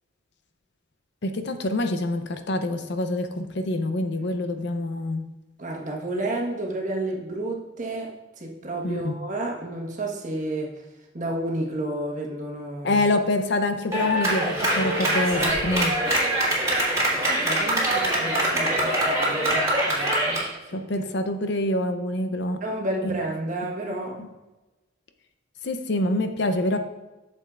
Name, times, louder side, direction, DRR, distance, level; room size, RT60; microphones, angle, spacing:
voice 1, 1.2-5.2 8.8-9.1 12.8-15.9 20.7-22.6 23.0-23.2 23.9-24.3 25.6-26.8, left 1 dB, 60° left, 8 dB, 0.6 m, -26 dB
voice 2, 5.6-8.1 8.4-10.7 11.1-13.0 17.3-20.4 20.7-21.1 22.6-24.2, right 1 dB, 40° right, -1 dB, 1.3 m, -31 dB
Clapping, 13.9-20.5, right 1 dB, 15° right, 1.8 m, -23 dB
8.6 x 6.8 x 2.4 m, 1.1 s
head